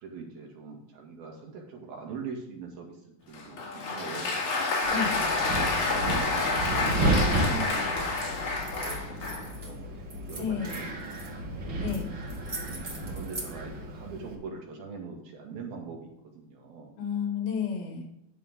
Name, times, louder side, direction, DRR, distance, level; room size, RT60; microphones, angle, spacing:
voice 1, 0.0-4.4 5.7-8.1 8.6-11.3 12.7-17.0, right 5 dB, 75° right, 0 dB, 4.0 m, -42 dB
Applause, 3.3-9.5, left 3 dB, 60° left, 3.7 m, -29 dB
Wind, 4.8-14.4, right 2 dB, 50° right, 1.5 m, -33 dB
voice 2, 4.9-5.3 10.4-10.9 11.8-12.1 17.0-18.1, left 6 dB, 75° left, 1 dB, 4.1 m, -31 dB
sound 1, 8.1-8.3 8.6-9.7 10.1-11.3 11.9-12.0 12.3-13.5, right 2 dB, 25° right, 1.6 m, -41 dB
10.5 x 8.5 x 3.6 m, 0.84 s
omnidirectional pair, 4.3 m